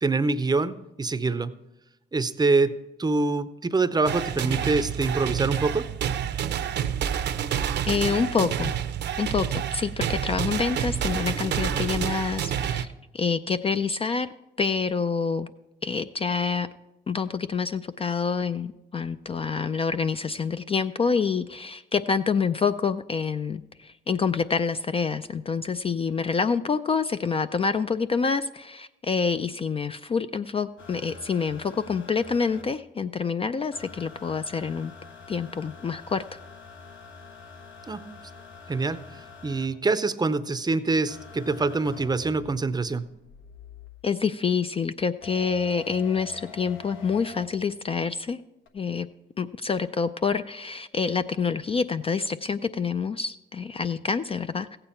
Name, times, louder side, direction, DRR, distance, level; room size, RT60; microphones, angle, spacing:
voice 1, 0.0-1.5 2.1-5.9 37.9-38.1 38.7-43.1, right 3 dB, 20° right, 13 dB, 0.6 m, -25 dB
sound 1, 4.1-12.9, right 9 dB, 60° right, 0.6 m, -28 dB
voice 2, 7.9-8.7 9.2-12.9 13.1-14.3 14.6-15.5 15.8-16.7 17.1-34.9 35.3-36.2 44.0-48.4 48.7-49.1 49.4-54.8, left 5 dB, 30° left, 11 dB, 0.3 m, -27 dB
sound 2, 30.8-32.6 33.7-39.7 41.1-44.0 45.2-47.5 48.7-48.8, left 5 dB, 80° left, 1.3 m, -46 dB
15.0 x 8.9 x 4.3 m, 0.95 s
cardioid pair, 90°, 20 cm